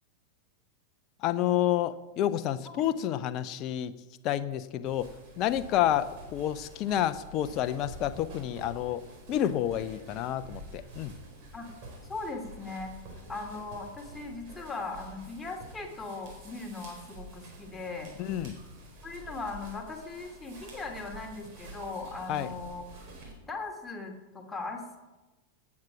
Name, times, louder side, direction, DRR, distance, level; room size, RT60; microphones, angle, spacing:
voice 1, 1.2-3.9 4.2-5.1 5.4-9.0 9.3-11.1 18.2-18.6 22.3-22.5, left 11 dB, 40° left, 11 dB, 0.8 m, -29 dB
sound 1, 4.8-23.3, right 2 dB, 45° right, 4.3 m, -48 dB
voice 2, 12.1-12.9 13.3-18.1 19.0-22.8 23.5-25.0, left 3 dB, 10° left, 1 dB, 2.5 m, -39 dB
18.5 x 8.6 x 6.0 m, 1.2 s
figure-of-eight pair, 90°, 0 cm